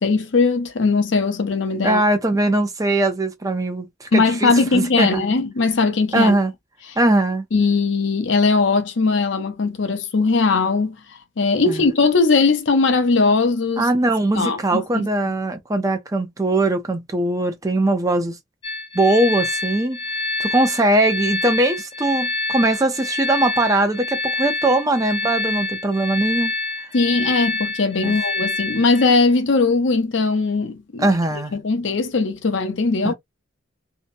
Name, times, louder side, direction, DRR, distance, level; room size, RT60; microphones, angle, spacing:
voice 1, 0.0-2.0 4.1-6.4 7.5-11.0 11.4-13.9 14.3-15.1 26.9-31.1 31.5-33.1, left 4 dB, 70° left, 0.6 m, -19 dB
voice 2, 1.8-5.2 6.1-6.5 7.0-7.4 11.7-11.9 13.8-18.4 18.9-20.0 20.4-26.5 28.0-28.2 31.0-31.6 33.0-33.1, right 2 dB, 20° right, 0.5 m, -20 dB
sound 1, 18.6-29.1, left 3 dB, 25° left, 0.6 m, -27 dB
2.7 x 2.1 x 2.6 m
head